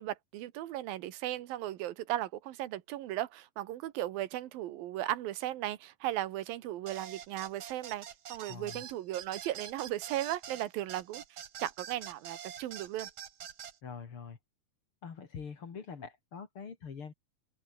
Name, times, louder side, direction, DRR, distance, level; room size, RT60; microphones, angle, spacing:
voice 1, 0.0-11.2 11.6-13.1, right 14 dB, 85° right, 3.0 m, -36 dB
sound 1, 6.9-13.8, right 9 dB, 50° right, 1.6 m, -45 dB
voice 2, 8.5-8.8 13.8-14.4 15.0-17.1, left 6 dB, 40° left, 2.8 m, -44 dB
open air
omnidirectional pair, 4.0 m